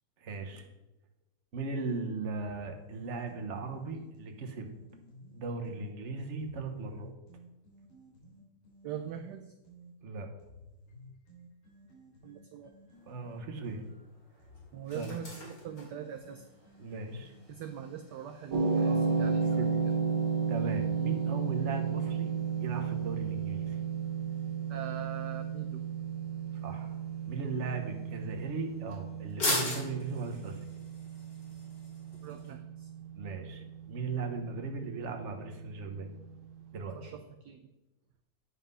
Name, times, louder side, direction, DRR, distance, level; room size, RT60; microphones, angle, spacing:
voice 1, 0.2-0.7 1.5-4.7 5.3-7.1 10.0-10.3 13.1-13.9 14.9-15.1 16.8-17.3 18.8-19.7 20.5-22.3 22.6-23.8 26.6-27.0 27.3-30.6 33.1-36.1 36.7-37.0, right 4 dB, 40° right, 4 dB, 1.2 m, -38 dB
sound 1, 2.4-5.9 6.4-9.9 10.4-18.2, equal, 90° left, 4.2 m, -55 dB
voice 2, 8.8-9.5 12.2-12.7 14.7-16.4 17.5-19.7 24.7-25.8 32.2-32.9 36.9-37.7, right 9 dB, 70° right, 6 dB, 1.1 m, -42 dB
sound 2, 12.9-32.5, left 2 dB, 60° left, 3.1 m, -43 dB
sound 3, 18.5-36.8, right 6 dB, 85° right, 1.8 m, -33 dB
9.9 x 5.8 x 5.5 m, 0.99 s
omnidirectional pair, 2.1 m